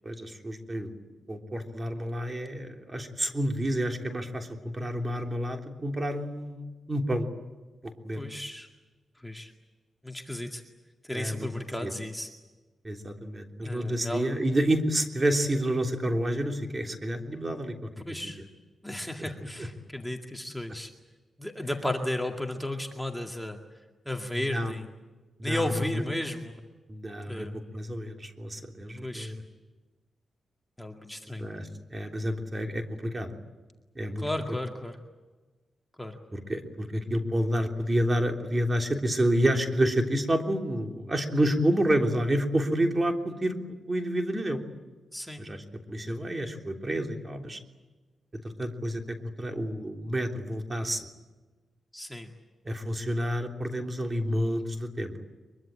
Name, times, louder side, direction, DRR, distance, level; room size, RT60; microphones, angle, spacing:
voice 1, 0.0-0.9 1.3-7.3 8.0-8.2 11.1-11.5 11.8-11.9 12.8-17.8 18.1-18.3 19.2-19.3 19.6-19.7 24.3-24.7 25.4-25.7 26.9-27.5 27.7-29.3 31.4-33.3 33.9-34.2 36.3-44.6 45.4-45.6 45.9-47.6 48.4-51.1 52.6-55.1, right 1 dB, 25° right, 3 dB, 3.3 m, -29 dB
voice 2, 8.1-8.7 9.2-9.5 10.0-10.6 11.0-12.3 13.6-14.3 18.0-18.4 18.8-20.9 21.4-23.6 24.1-24.9 25.4-26.5 27.3-27.6 29.0-29.3 30.8-31.5 34.2-35.0 36.0-36.2 36.9-37.0 45.1-45.5 51.9-52.3, left 1 dB, 5° left, 2 dB, 2.1 m, -34 dB
23.5 x 23.0 x 8.9 m, 1.3 s
cardioid pair, 80°, 0 cm